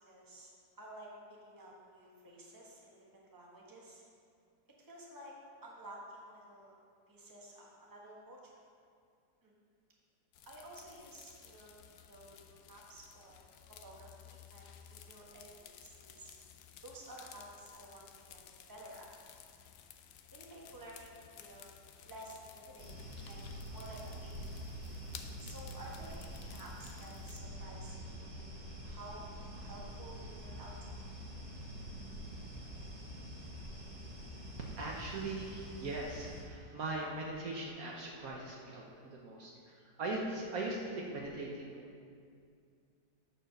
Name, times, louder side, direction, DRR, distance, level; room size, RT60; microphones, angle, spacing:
voice 1, 0.0-0.5 0.8-4.0 4.8-5.3 5.6-6.8 7.1-8.5 9.4-9.5 10.5-16.3 16.8-19.1 20.3-21.7 22.0-24.4 25.4-28.5 28.8-29.3 29.5-30.7, right 1 dB, 15° right, -3 dB, 1.2 m, -52 dB
sound 1, 10.3-27.4, left 8 dB, 75° left, 1.1 m, -56 dB
sound 2, 22.8-36.4, equal, 40° right, 1.9 m, -46 dB
voice 2, 34.6-41.9, right 2 dB, 60° right, -2 dB, 1.2 m, -40 dB
9.0 x 4.5 x 6.4 m, 2.3 s
omnidirectional pair, 1.8 m